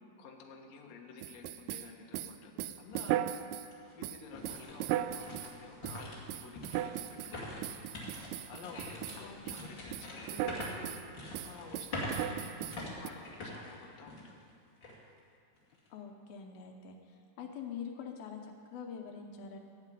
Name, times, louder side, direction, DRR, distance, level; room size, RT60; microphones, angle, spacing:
voice 1, 0.2-3.3 4.0-7.7 8.5-11.0 11.4-12.5 12.9-14.4, left 5 dB, 60° left, 1 dB, 2.0 m, -51 dB
sound 1, 1.2-3.7 4.0-5.5 5.8-6.0 6.3-7.3 7.6-9.2 9.5-9.7 9.9-11.0 11.3-13.1, right 12 dB, 85° right, 2.5 m, -37 dB
sound 2, 2.9-3.0 3.5-14.4 14.8-14.9 15.5-15.9, left 1 dB, 35° left, 2.4 m, -44 dB
voice 2, 9.2-9.7 15.9-19.6, left 6 dB, 75° left, 3 dB, 2.7 m, -45 dB
16.0 x 7.4 x 9.1 m, 2.4 s
omnidirectional pair, 4.5 m